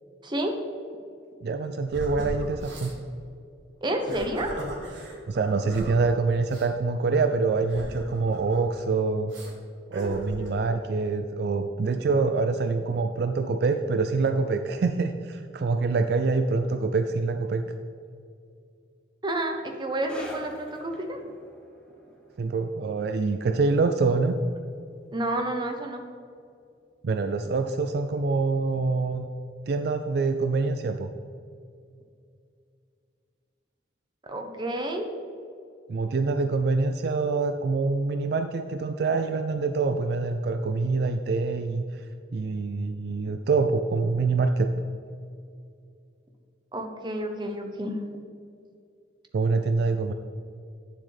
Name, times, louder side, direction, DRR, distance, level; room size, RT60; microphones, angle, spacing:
voice 1, 1.4-2.9 5.3-9.3 9.9-17.6 22.4-24.4 27.0-29.3 29.7-31.1 35.9-42.0 42.3-44.7 49.3-50.1, right 4 dB, 60° right, 7 dB, 0.4 m, -25 dB
sound 1, 1.9-3.0 3.9-6.0 6.5-6.7 7.6-8.8 9.3-9.5 9.9-10.6, equal, 80° right, 1.7 m, -38 dB
voice 2, 3.8-4.5 19.2-21.2 25.1-26.0 34.2-35.1 46.7-48.0, right 1 dB, 25° right, 4 dB, 0.8 m, -30 dB
sound 2, 20.0-27.0 27.3-27.5 28.3-28.4, equal, 5° left, 0.9 m, -47 dB
9.2 x 7.3 x 3.3 m, 2.4 s
head